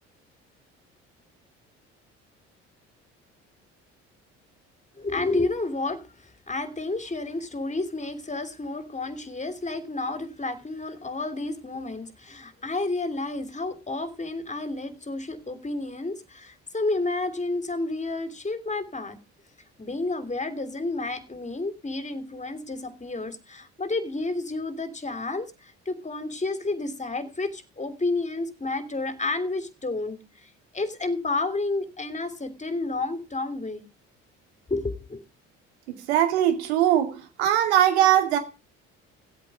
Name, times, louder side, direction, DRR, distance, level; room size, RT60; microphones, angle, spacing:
voice 1, 5.0-19.2 19.8-30.5 30.7-33.9 34.7-35.2, left 2 dB, 20° left, 3.1 m, -31 dB
voice 2, 36.1-38.4, right 11 dB, 85° right, 2.5 m, -21 dB
16.0 x 8.4 x 4.9 m
hypercardioid pair, 60°, 32 cm